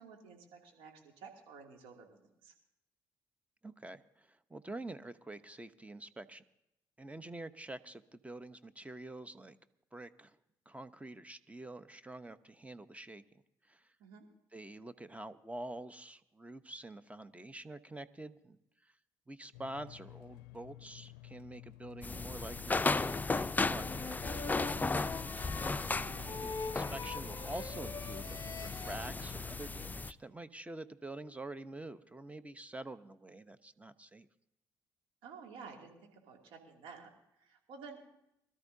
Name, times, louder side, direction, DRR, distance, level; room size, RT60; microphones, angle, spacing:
voice 1, 0.0-2.5 14.0-14.3 25.9-26.4 35.2-37.1 37.4-38.0, right 5 dB, 75° right, 1 dB, 2.7 m, -52 dB
voice 2, 3.6-6.4 7.0-9.6 9.9-10.4 10.7-13.2 13.6-13.9 14.5-18.9 19.3-24.7 26.4-34.3, right 2 dB, 15° right, 13 dB, 0.9 m, -47 dB
sound 1, 19.5-29.9, left 18 dB, 80° left, 0.4 m, -53 dB
sound 2, 22.0-30.1, left 3 dB, 20° left, 0.5 m, -36 dB
sound 3, 23.7-29.0, left 4 dB, 35° left, 1.1 m, -44 dB
24.5 x 13.0 x 2.8 m, 0.83 s
hypercardioid pair, 50°, 9 cm